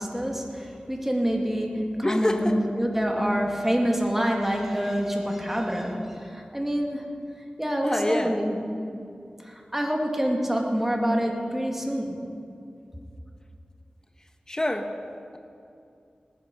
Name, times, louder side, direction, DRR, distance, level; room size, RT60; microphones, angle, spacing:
voice 1, 0.0-7.1 7.6-8.6 8.9-9.0 9.4-12.2, equal, 10° right, 1 dB, 2.2 m, -26 dB
voice 2, 2.0-2.6 7.8-8.4 14.5-14.9, left 1 dB, 20° left, 5 dB, 1.1 m, -26 dB
19.0 x 10.0 x 5.4 m, 2.5 s
wide cardioid pair, 55°, 3 cm